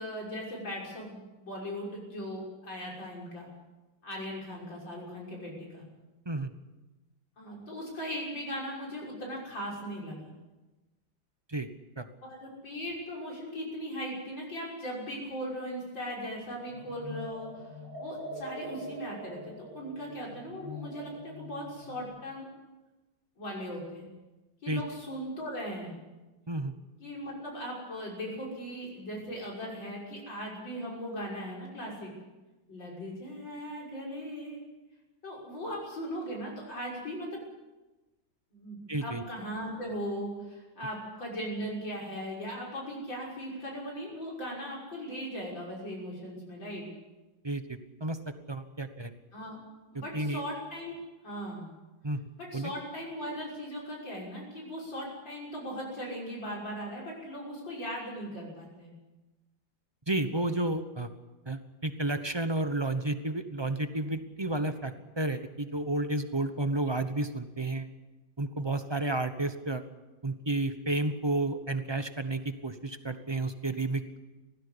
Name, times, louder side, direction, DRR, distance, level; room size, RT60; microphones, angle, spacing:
voice 1, 0.0-3.5 4.0-5.8 7.4-10.3 12.2-17.7 18.0-22.5 23.4-24.1 24.6-25.9 27.0-32.1 32.7-34.6 35.2-37.4 38.5-46.9 49.3-49.6 49.9-51.0 51.2-51.7 52.4-58.9, equal, 75° left, -3 dB, 6.9 m, -38 dB
sound 1, 16.6-22.0, left 1 dB, 45° left, 7.6 m, -43 dB
voice 2, 38.9-39.2 47.4-48.2 48.5-49.1 50.1-50.4 52.0-52.2 52.5-52.7 60.1-61.1 61.5-67.9 68.4-69.8 70.2-74.2, right 2 dB, 20° right, 9 dB, 0.7 m, -31 dB
19.0 x 15.5 x 9.9 m, 1.1 s
omnidirectional pair, 2.1 m